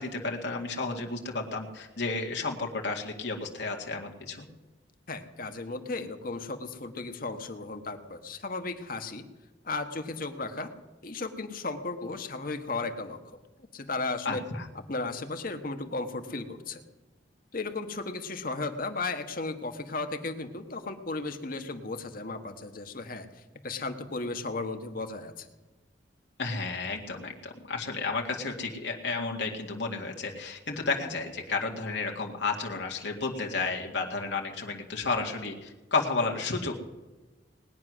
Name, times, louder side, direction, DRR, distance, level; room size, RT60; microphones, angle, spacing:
voice 1, 0.0-4.5 14.3-14.7 26.4-36.8, left 3 dB, 65° left, 1 dB, 2.0 m, -32 dB
voice 2, 5.1-9.2 9.6-10.7 11.0-13.2 13.7-14.4 14.9-16.8 17.5-25.5, left 3 dB, 50° left, 7 dB, 1.3 m, -35 dB
19.5 x 9.6 x 6.2 m, 1.2 s
head